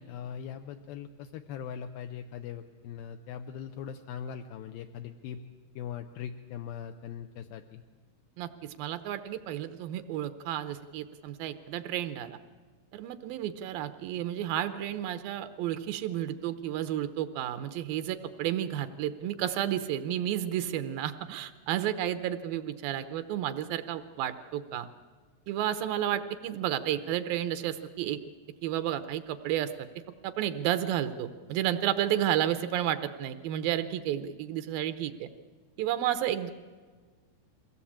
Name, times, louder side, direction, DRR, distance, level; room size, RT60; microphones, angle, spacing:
voice 1, 0.0-5.4 5.8-7.8, left 8 dB, 80° left, 6 dB, 2.5 m, -40 dB
voice 2, 8.4-12.4 12.9-24.9 25.5-28.2 28.6-29.9 30.2-35.3 35.8-36.5, right 11 dB, 75° right, 11 dB, 2.4 m, -31 dB
22.5 x 16.5 x 8.6 m, 1.5 s
omnidirectional pair, 4.4 m